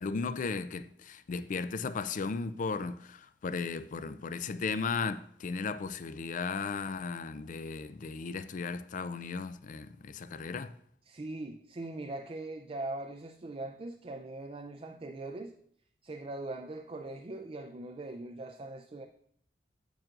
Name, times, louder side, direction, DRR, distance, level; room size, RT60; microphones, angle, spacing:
voice 1, 0.0-10.7, left 4 dB, 45° left, 0.4 m, -36 dB
voice 2, 11.1-15.5 16.0-19.1, right 2 dB, 35° right, 0.4 m, -41 dB
9.0 x 7.9 x 2.5 m
head